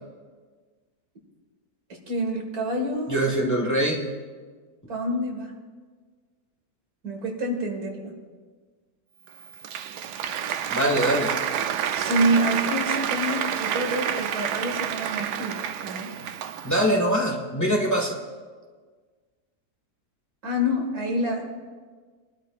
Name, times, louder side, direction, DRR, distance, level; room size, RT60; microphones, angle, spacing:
voice 1, 1.9-3.1 4.9-5.6 7.0-8.2 11.9-16.1 20.4-21.6, equal, 65° right, 1 dB, 2.4 m, -27 dB
voice 2, 3.1-4.1 10.7-11.3 16.6-18.2, equal, 10° left, -1 dB, 1.6 m, -23 dB
Applause, 9.3-16.9, right 9 dB, 80° right, 1.2 m, -29 dB
23.0 x 12.0 x 2.5 m, 1.5 s
omnidirectional pair, 1.7 m